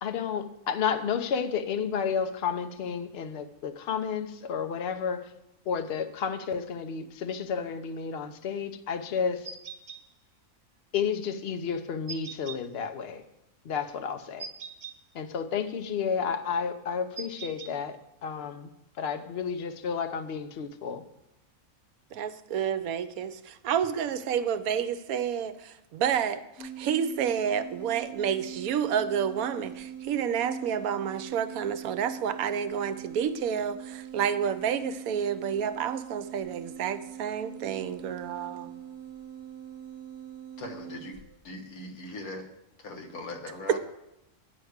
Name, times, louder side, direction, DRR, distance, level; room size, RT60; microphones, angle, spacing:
voice 1, 0.0-5.2 5.7-9.5 10.9-13.2 13.7-14.5 15.1-18.0 18.2-18.7 19.0-21.0, left 6 dB, 55° left, 8 dB, 0.8 m, -31 dB
sound 1, 9.5-10.0 12.1-12.6 14.4-15.0 17.2-17.7, right 6 dB, 50° right, 0.9 m, -40 dB
voice 2, 22.1-38.7 43.7-43.8, right 8 dB, 75° right, 11 dB, 1.1 m, -29 dB
sound 2, 26.6-41.4, right 9 dB, 10° left, 2.0 m, -43 dB
voice 3, 40.6-41.1 41.4-42.5 42.8-43.8, left 2 dB, 75° left, 2 dB, 1.7 m, -40 dB
10.0 x 4.7 x 7.9 m, 0.87 s
omnidirectional pair, 1.6 m